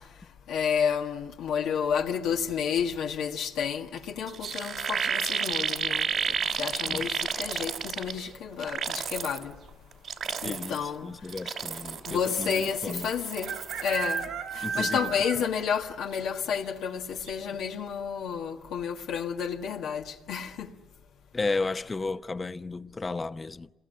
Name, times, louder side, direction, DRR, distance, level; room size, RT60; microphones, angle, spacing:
voice 1, 0.5-6.1 6.6-9.5 10.4-11.1 12.1-13.5 13.8-14.3 14.5-20.7, left 7 dB, 90° left, 1.7 m, -30 dB
sound 1, 4.0-4.1 4.3-8.3 8.6-9.4 9.9-10.9 11.3-14.3 14.5-14.9, right 7 dB, 60° right, 2.8 m, -32 dB
sound 2, 5.9-6.4 8.2-8.6 8.8-8.9 9.2-9.7 10.5-10.6 10.8-10.9 12.4-12.5 13.4-15.7 16.1-16.2 16.7-16.8 17.2-17.3, right 6 dB, 80° right, 2.3 m, -34 dB
voice 2, 10.4-13.1 14.6-15.1 21.3-23.7, left 3 dB, 25° left, 0.9 m, -33 dB
27.0 x 21.5 x 9.3 m
cardioid pair, 90°, 0 cm